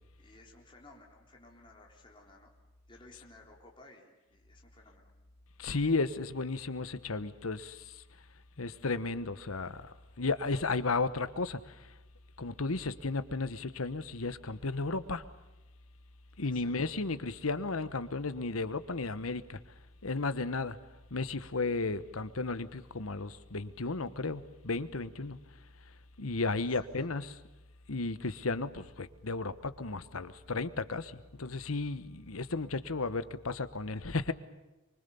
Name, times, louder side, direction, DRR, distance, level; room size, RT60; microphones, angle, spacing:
voice 1, 0.2-2.5 2.9-5.1 16.4-16.9 27.0-27.1, left 2 dB, 25° left, 3.8 m, -57 dB
voice 2, 5.6-8.0 8.6-11.9 12.4-15.2 16.4-19.6 20.0-20.8 21.1-25.4 26.2-27.3 27.9-34.3, left 3 dB, 90° left, 1.2 m, -34 dB
24.5 x 24.0 x 7.0 m
head